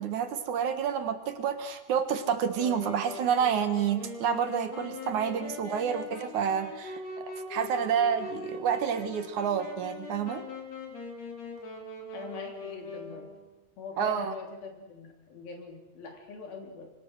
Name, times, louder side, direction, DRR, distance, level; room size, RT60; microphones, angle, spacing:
voice 1, 0.0-7.0 7.3-10.4 14.0-14.3, right 8 dB, 65° right, 9 dB, 2.6 m, -29 dB
Wind instrument woodwind instrument, 2.5-13.5, left 3 dB, 50° left, 4.8 m, -41 dB
voice 2, 12.1-13.3 13.8-16.9, left 4 dB, 90° left, 3 dB, 5.3 m, -42 dB
26.0 x 24.0 x 6.5 m, 1.0 s
omnidirectional pair, 4.1 m